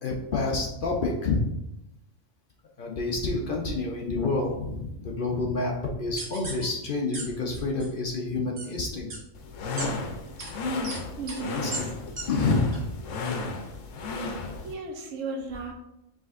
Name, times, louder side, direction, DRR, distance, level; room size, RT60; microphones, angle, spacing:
voice 1, 0.0-1.4 2.8-5.7 6.0-9.1 9.7-9.9 11.5-12.0 12.3-12.8, left 3 dB, 55° left, 0 dB, 0.7 m, -28 dB
sound 1, 6.2-6.6 7.1-7.2 7.5-7.9 8.6-8.7 9.1-9.2 9.8-9.9 10.4-10.5 10.8-11.0 11.3-11.4 11.7-11.8 12.2-12.3 12.7-12.8, right 3 dB, 45° right, 1.1 m, -35 dB
sound 2, 9.4-14.7, left 3 dB, 90° left, 1.0 m, -33 dB
voice 2, 11.2-11.9 14.6-15.7, right 3 dB, 85° right, 4 dB, 1.1 m, -35 dB
5.0 x 3.3 x 2.5 m, 0.85 s
omnidirectional pair, 1.3 m